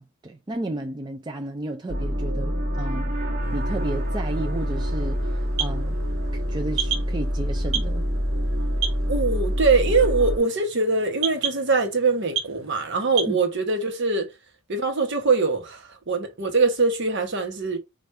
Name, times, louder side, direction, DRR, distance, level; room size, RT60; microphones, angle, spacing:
voice 1, 0.0-3.1 3.5-6.0 6.3-8.0 13.3-13.4, right 2 dB, 20° right, 0.4 m, -33 dB
sound 1, 1.9-10.4, equal, 40° right, 1.3 m, -26 dB
sound 2, 3.4-13.4, right 8 dB, 75° right, 0.8 m, -35 dB
voice 2, 9.1-14.3 14.7-17.8, right 3 dB, 55° right, 1.1 m, -23 dB
5.0 x 2.5 x 4.2 m
head